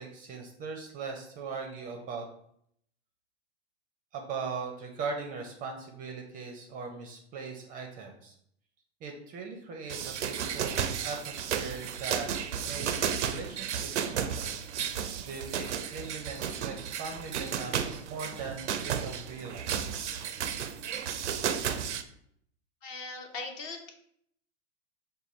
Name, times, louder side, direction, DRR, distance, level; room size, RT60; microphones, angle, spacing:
voice 1, 0.0-2.3 4.1-8.3 9.0-12.3 12.6-14.6 14.8-19.8, right 4 dB, 25° right, 3 dB, 0.5 m, -40 dB
sound 1, 9.9-22.0, right 8 dB, 90° right, 0.5 m, -33 dB
voice 2, 22.8-23.9, left 3 dB, 35° left, 4 dB, 0.6 m, -39 dB
5.2 x 2.2 x 3.1 m, 0.69 s
hypercardioid pair, 115°, 34 cm